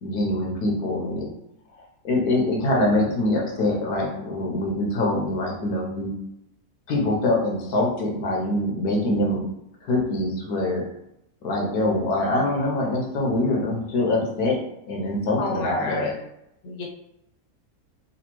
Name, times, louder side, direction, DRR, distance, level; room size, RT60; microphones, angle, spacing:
voice 1, 0.0-1.3 2.0-6.1 6.9-9.4 9.8-10.9 11.4-14.6 14.9-16.1, left 1 dB, 85° left, -2 dB, 1.4 m, -24 dB
voice 2, 15.3-16.1 16.6-16.8, left 3 dB, 60° left, -1 dB, 1.0 m, -30 dB
4.1 x 2.4 x 3.0 m, 0.82 s
omnidirectional pair, 1.6 m